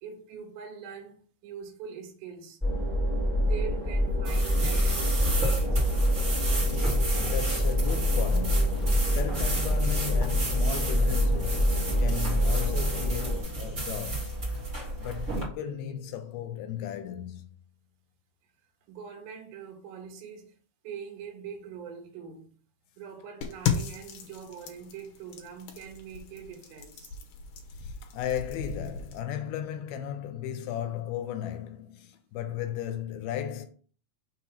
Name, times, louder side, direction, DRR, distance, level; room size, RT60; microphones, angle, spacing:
voice 1, 0.0-2.6 3.4-5.8 18.9-20.5 20.8-22.5 23.0-27.1, right 6 dB, 75° right, 3.0 m, -43 dB
sound 1, 2.6-13.4, equal, ahead, 1.7 m, -26 dB
sound 2, 4.2-15.4, right 2 dB, 30° right, 1.7 m, -33 dB
voice 2, 6.7-14.4 14.7-17.5 27.8-33.7, left 10 dB, 85° left, 2.6 m, -36 dB
sound 3, 23.4-29.2, left 7 dB, 70° left, 2.4 m, -36 dB
6.3 x 3.0 x 5.7 m
omnidirectional pair, 4.4 m